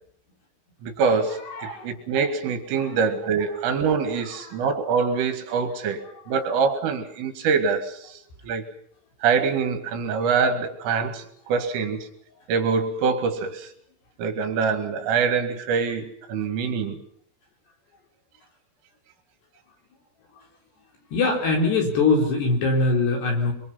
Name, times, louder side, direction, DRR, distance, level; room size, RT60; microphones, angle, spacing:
voice 1, 0.8-8.2 8.4-8.6 9.2-12.1 12.5-13.7 14.2-17.0, right 5 dB, 75° right, 7 dB, 4.6 m, -24 dB
voice 2, 1.5-1.9 2.7-2.9 21.1-23.5, left 3 dB, 55° left, 1 dB, 6.1 m, -22 dB
24.5 x 24.5 x 5.8 m, 0.65 s
omnidirectional pair, 5.9 m